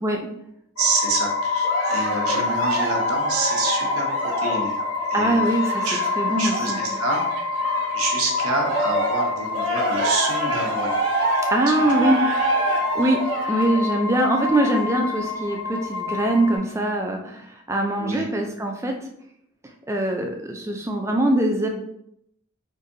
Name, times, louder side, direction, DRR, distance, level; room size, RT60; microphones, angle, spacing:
sound 1, 0.8-16.6, left 4 dB, 90° left, 0.8 m, -27 dB
voice 1, 0.8-4.1 4.4-4.7 5.1-5.5 5.8-6.1 6.4-7.2 7.9-11.0 11.9-12.0 18.0-18.3, right 3 dB, 90° right, 1 dB, 0.8 m, -27 dB
Cheering, 1.6-8.0 8.3-14.9 15.5-15.6, right 2 dB, 60° right, 0.7 m, -27 dB
voice 2, 5.1-5.9 6.2-6.8 11.5-12.2 12.7-13.2 13.5-18.9 19.9-21.7, right 1 dB, 15° right, 2 dB, 0.3 m, -23 dB
3.9 x 2.6 x 2.6 m, 0.75 s
head